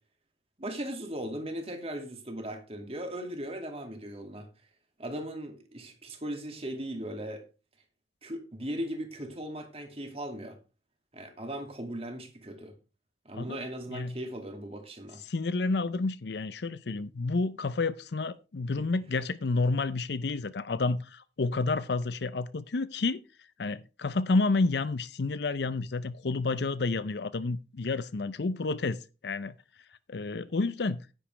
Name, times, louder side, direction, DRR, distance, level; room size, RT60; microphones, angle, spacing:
voice 1, 0.6-4.5 5.0-7.4 8.2-10.6 11.1-12.7 13.2-15.2 18.8-18.9, right 1 dB, 35° right, 2.4 m, -38 dB
voice 2, 13.3-13.7 13.9-14.1 15.3-23.2 23.6-29.5 30.1-31.0, left 3 dB, 65° left, 0.6 m, -30 dB
10.0 x 10.0 x 3.3 m
head